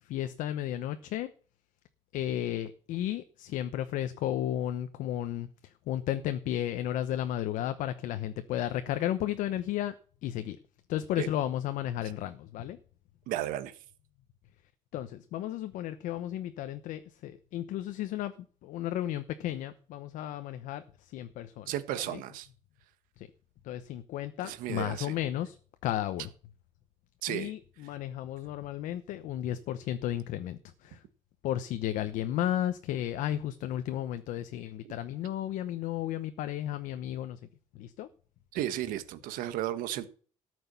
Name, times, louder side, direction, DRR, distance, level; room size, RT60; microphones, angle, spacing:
voice 1, 0.1-1.3 2.1-5.5 5.9-9.9 10.2-10.6 10.9-12.8 14.9-18.3 18.6-21.7 22.1-22.2 23.2-23.3 23.6-25.6 25.8-26.3 27.3-31.0 31.4-37.4 37.8-38.1, left 12 dB, 70° left, 1.0 m, -33 dB
voice 2, 13.3-13.7 21.7-22.5 24.4-25.1 27.2-27.5 34.8-34.9 38.5-40.1, right 13 dB, 85° right, 1.5 m, -34 dB
13.5 x 6.3 x 7.0 m
cardioid pair, 165°, 14 cm